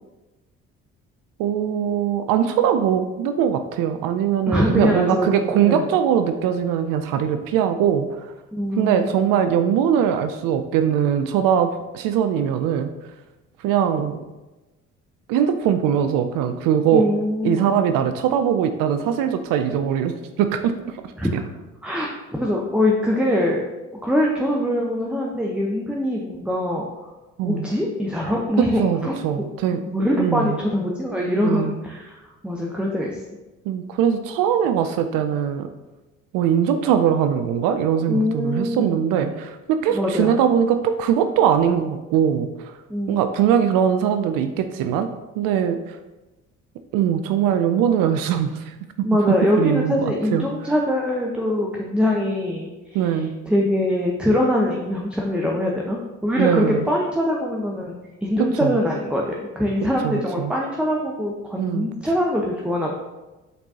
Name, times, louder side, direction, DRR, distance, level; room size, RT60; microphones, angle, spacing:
voice 1, 1.4-8.3 8.8-12.9 13.6-14.2 15.3-17.1 17.4-21.0 21.3-21.4 27.4-27.7 28.6-29.8 30.2-30.6 31.3-31.7 33.7-35.7 36.3-42.7 43.1-45.1 45.4-46.0 46.9-48.7 49.3-50.5 52.9-53.3 56.4-56.9 58.6-58.8 60.0-60.5 61.6-61.9, right 8 dB, 65° right, 9 dB, 0.5 m, -21 dB
voice 2, 4.5-5.8 8.5-9.1 16.9-17.7 21.2-21.5 21.8-22.1 22.3-23.6 24.0-26.9 27.4-29.2 29.7-33.2 38.1-38.9 39.9-40.4 42.9-43.3 49.0-52.7 53.0-62.9, left 1 dB, 5° right, -1 dB, 0.8 m, -23 dB
8.1 x 4.4 x 2.7 m, 1.1 s
hypercardioid pair, 50°, 37 cm